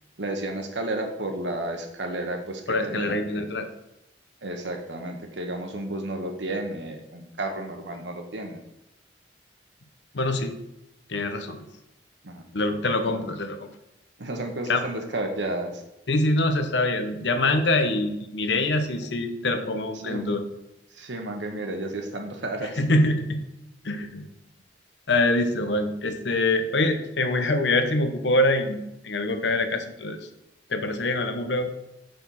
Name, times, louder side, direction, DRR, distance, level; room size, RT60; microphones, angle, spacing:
voice 1, 0.2-3.5 4.4-8.6 12.2-12.4 13.2-13.4 14.2-15.8 20.0-20.4 20.9-22.8, right 1 dB, 85° right, 4 dB, 1.2 m, -32 dB
voice 2, 2.7-3.7 10.1-10.5 11.1-11.6 12.5-13.6 14.7-14.8 16.1-20.5 22.8-23.4 23.8-24.3 25.1-30.2 30.7-31.7, left 2 dB, 70° left, 7 dB, 0.9 m, -24 dB
6.5 x 6.5 x 4.2 m, 0.89 s
head